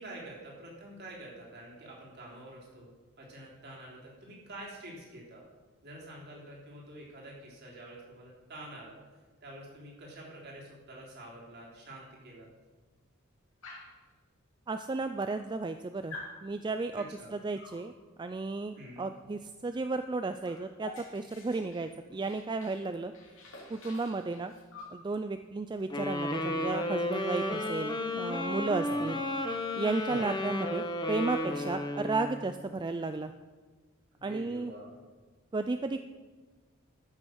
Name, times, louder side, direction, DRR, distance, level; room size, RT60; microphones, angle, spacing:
voice 1, 0.0-2.9 3.2-5.4 5.8-9.0 9.4-12.5 16.9-17.3 18.7-19.1 28.9-29.2 30.1-30.3 34.2-34.9, right 1 dB, 50° right, -3 dB, 3.4 m, -47 dB
Dog, 13.6-14.0 14.9-15.0 15.2-15.8 16.1-16.4 17.6-17.9 19.7-19.9 20.1-22.8 23.1-25.0 26.3-26.4 26.7-26.9 27.2-28.4, left 3 dB, 65° left, 2.6 m, -49 dB
voice 2, 14.7-17.0 17.3-17.9 18.2-23.1 23.7-24.5 24.9-29.2 29.8-33.3 34.2-34.7 35.5-36.0, right 3 dB, 20° right, 9 dB, 0.3 m, -33 dB
sound 1, 25.9-32.5, left 1 dB, 20° left, 1.1 m, -33 dB
14.0 x 6.6 x 6.3 m, 1.3 s
head